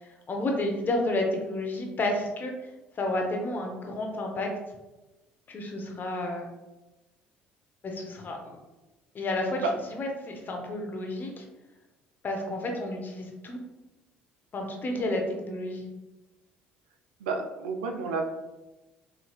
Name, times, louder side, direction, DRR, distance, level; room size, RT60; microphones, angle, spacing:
voice 1, 0.0-2.5 2.9-4.5 5.5-6.5 7.8-8.6 9.1-9.6 9.9-11.4 12.2-13.6 14.5-15.9, left 1 dB, 40° left, 2 dB, 0.7 m, -31 dB
voice 2, 17.2-18.2, right 3 dB, 80° right, 4 dB, 0.3 m, -30 dB
3.1 x 2.7 x 2.3 m, 1.1 s
hypercardioid pair, 60°, 5 cm